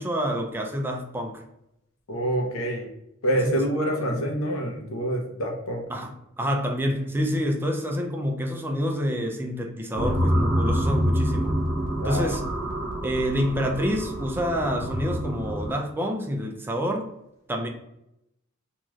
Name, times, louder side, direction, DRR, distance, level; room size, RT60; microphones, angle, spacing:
voice 1, 0.0-1.4 3.4-3.7 4.1-4.2 5.9-6.1 6.4-11.6 12.0-12.4 13.0-17.1 17.5-17.7, equal, 10° right, 3 dB, 0.4 m, -27 dB
voice 2, 2.1-2.9 3.2-5.9 12.0-12.4, right 1 dB, 85° left, 2 dB, 0.7 m, -26 dB
sound 1, 9.9-15.7, equal, 60° right, 0.8 m, -26 dB
3.1 x 2.6 x 2.3 m, 0.83 s
head